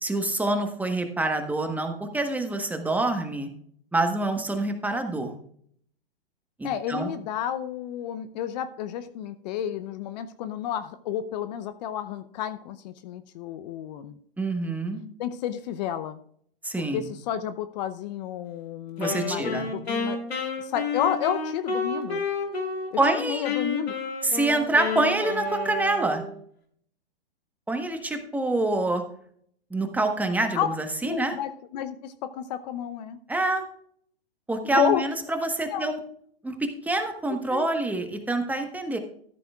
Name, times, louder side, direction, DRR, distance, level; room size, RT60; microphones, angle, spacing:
voice 1, 0.0-3.5 3.9-5.4 6.6-7.1 14.4-15.0 16.6-17.1 19.0-19.7 23.0-23.4 24.2-26.2 27.7-29.0 29.7-31.3 33.3-33.6 34.5-36.0 36.4-39.0, right 2 dB, 5° right, 5 dB, 1.3 m, -26 dB
voice 2, 6.6-14.2 15.2-16.2 16.9-20.2 20.6-22.2 22.9-23.9 30.5-30.7 31.0-33.2 34.7-35.0 35.7-35.9 37.5-37.7, left 10 dB, 45° left, 12 dB, 0.7 m, -31 dB
Wind instrument woodwind instrument, 19.0-23.2 23.4-26.4, left 4 dB, 85° left, 3.0 m, -30 dB
14.0 x 12.0 x 2.4 m, 0.63 s
hypercardioid pair, 120°, 31 cm